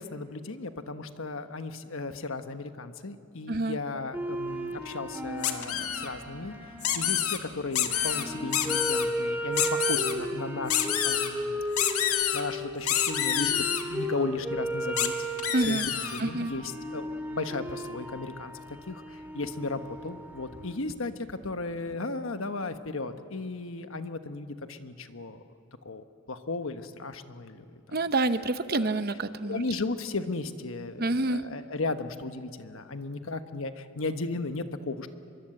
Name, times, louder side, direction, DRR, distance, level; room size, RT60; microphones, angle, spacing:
voice 1, 0.0-6.7 6.9-15.3 15.6-25.4 25.8-27.6 28.6-29.0 29.4-35.1, left 3 dB, 70° left, 8 dB, 1.2 m, -35 dB
sound 1, 4.1-20.8, equal, 10° right, 2.1 m, -35 dB
sound 2, 5.4-6.1 6.8-7.4 7.7-8.2 8.5-9.0 9.5-10.1 10.7-11.3 11.8-12.4 12.9-13.8 15.0-15.1 15.4-16.2, left 10 dB, 90° left, 1.6 m, -27 dB
voice 2, 15.5-15.9 16.2-16.5 27.9-29.6 31.0-31.4, right 2 dB, 45° right, 11 dB, 0.8 m, -27 dB
24.0 x 23.0 x 7.9 m, 2.4 s
head